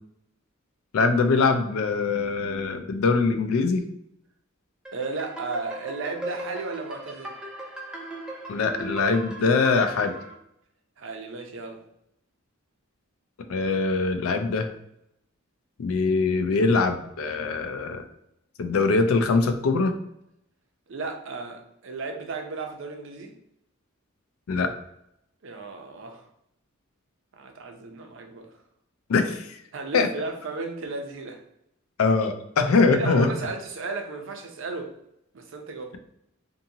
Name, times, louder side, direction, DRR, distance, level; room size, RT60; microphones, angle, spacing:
voice 1, 0.9-3.8 8.5-10.1 13.5-14.7 15.8-18.0 18.6-19.9 24.5-24.7 29.1-29.6 29.9-30.1 32.0-33.3, left 4 dB, 85° left, 8 dB, 0.4 m, -22 dB
sound 1, 4.8-10.3, right 2 dB, 5° right, 0.4 m, -38 dB
voice 2, 4.9-7.3 11.0-11.8 20.9-23.3 25.4-26.3 27.3-28.5 29.7-31.4 32.9-34.9 35.3-36.0, right 3 dB, 65° right, 3 dB, 0.5 m, -34 dB
2.6 x 2.6 x 2.7 m, 0.78 s
head